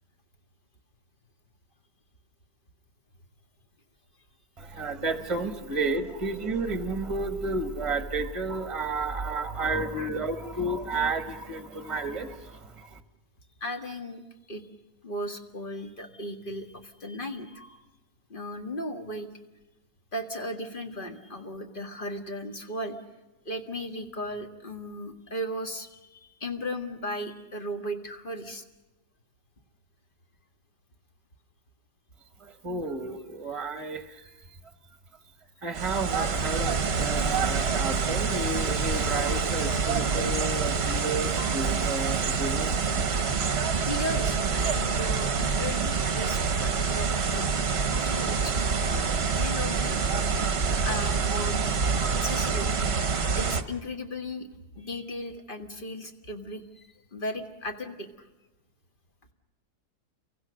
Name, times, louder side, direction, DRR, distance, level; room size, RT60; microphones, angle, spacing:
voice 1, 4.6-13.0 32.4-34.2 35.6-43.0, right 3 dB, 20° right, 9 dB, 1.5 m, -32 dB
voice 2, 13.6-14.2 14.5-14.7 15.0-17.8 18.3-19.3 20.1-23.0 23.4-28.7 43.8-47.6 48.0-48.6 49.4-50.0 50.3-50.5 50.8-51.8 52.2-53.0 53.3-54.5 54.7-58.3, left 1 dB, 30° left, 5 dB, 1.9 m, -36 dB
sound 1, 35.7-53.6, right 5 dB, 45° right, 1.3 m, -26 dB
30.0 x 23.5 x 6.5 m, 1.1 s
omnidirectional pair, 1.7 m